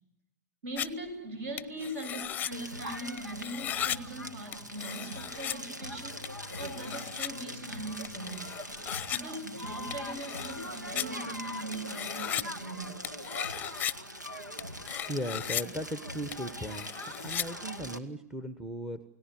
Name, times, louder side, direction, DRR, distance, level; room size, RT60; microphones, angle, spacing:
voice 1, 0.6-6.2 6.6-8.5 9.1-13.1, right 1 dB, 50° right, 9 dB, 7.8 m, -40 dB
sound 1, 0.8-0.9 1.6-2.5 3.2-4.0 4.5-5.6 6.2-7.3 8.0-9.2 9.9-10.7 10.9-11.0 11.7-12.4 13.0-13.9 14.6-15.6 16.3-17.4, left 10 dB, 20° left, 0.9 m, -36 dB
Crackle, 2.5-18.0, equal, 90° right, 2.1 m, -41 dB
voice 2, 15.1-16.9 17.2-19.0, equal, 5° right, 11 dB, 1.2 m, -37 dB
29.5 x 18.0 x 9.8 m, 0.84 s
figure-of-eight pair, 105°, 9 cm